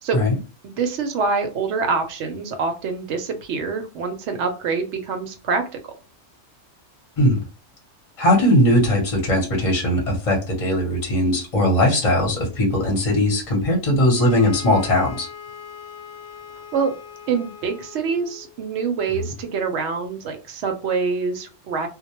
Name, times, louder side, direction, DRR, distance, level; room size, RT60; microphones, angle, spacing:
voice 1, 0.6-5.7 16.7-16.9 17.3-21.9, right 5 dB, 70° right, 6 dB, 0.8 m, -25 dB
voice 2, 8.2-15.3, left 1 dB, 35° left, -2 dB, 0.8 m, -19 dB
sound 1, 14.1-18.5, left 7 dB, 75° left, 0.9 m, -40 dB
2.2 x 2.1 x 2.9 m, 0.34 s
omnidirectional pair, 1.3 m